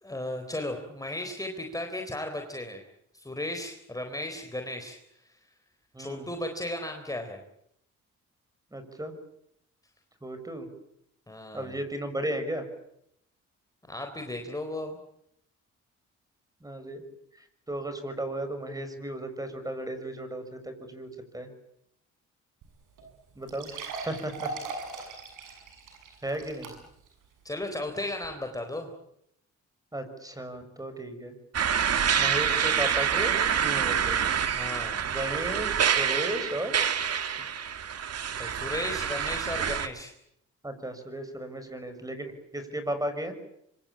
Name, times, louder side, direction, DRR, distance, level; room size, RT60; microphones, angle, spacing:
voice 1, 0.0-2.8 3.1-5.0 6.0-7.4 11.3-11.8 13.9-15.0 27.4-28.9 34.5-35.0 38.4-40.1, left 1 dB, 10° left, 5 dB, 4.0 m, -35 dB
voice 2, 5.9-6.3 8.7-9.1 10.2-10.7 11.5-12.6 16.6-17.0 17.7-21.5 23.4-23.7 24.0-24.5 26.2-26.7 29.9-31.3 32.1-34.2 35.1-36.7 40.6-43.3, right 1 dB, 10° right, 9 dB, 6.5 m, -35 dB
sound 1, 22.6-22.7 23.0-23.1 23.5-27.1 27.5-27.6 28.2-28.3, right 4 dB, 85° right, 7.6 m, -39 dB
sound 2, 31.5-39.9, right 8 dB, 55° right, 2.1 m, -27 dB
25.5 x 25.0 x 8.9 m, 0.76 s
cardioid pair, 90°, 30 cm